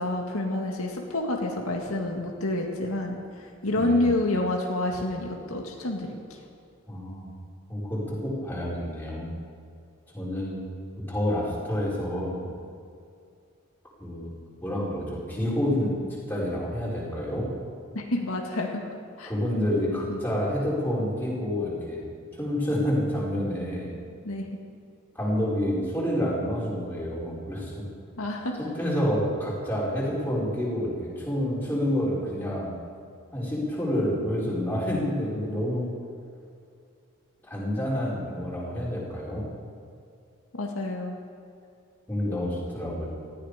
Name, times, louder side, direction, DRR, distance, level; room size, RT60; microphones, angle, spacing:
voice 1, 0.0-6.4 17.9-18.8 19.2-19.3 20.1-20.2 24.2-24.5 28.2-28.6 40.5-41.2, left 2 dB, 85° left, 1 dB, 2.1 m, -28 dB
voice 2, 6.9-7.3 7.7-9.3 10.1-10.6 11.1-12.5 14.0-14.3 14.6-15.9 16.3-17.5 19.3-22.0 22.4-23.9 25.1-27.9 28.6-32.7 33.3-35.9 37.4-39.5 42.1-43.1, equal, 10° left, -7 dB, 5.0 m, -28 dB
19.0 x 14.5 x 5.2 m, 2.4 s
head